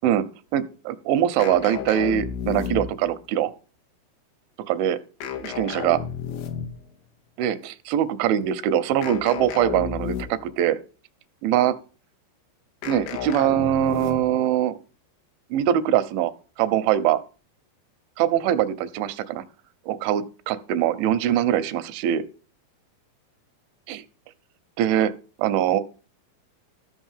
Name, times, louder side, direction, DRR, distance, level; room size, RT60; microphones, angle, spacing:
voice 1, 0.5-3.5 4.7-5.0 5.4-6.0 7.4-10.8 11.4-11.8 12.8-14.8 15.5-16.3 16.6-17.2 18.2-19.4 19.9-22.2 23.9-24.0 24.8-25.1 25.4-25.8, right 11 dB, 85° right, 3.3 m, -22 dB
sound 1, 1.4-3.2 5.2-6.9 9.0-10.6 12.8-14.4, left 7 dB, 80° left, 4.2 m, -32 dB
14.0 x 5.9 x 7.4 m
omnidirectional pair, 5.2 m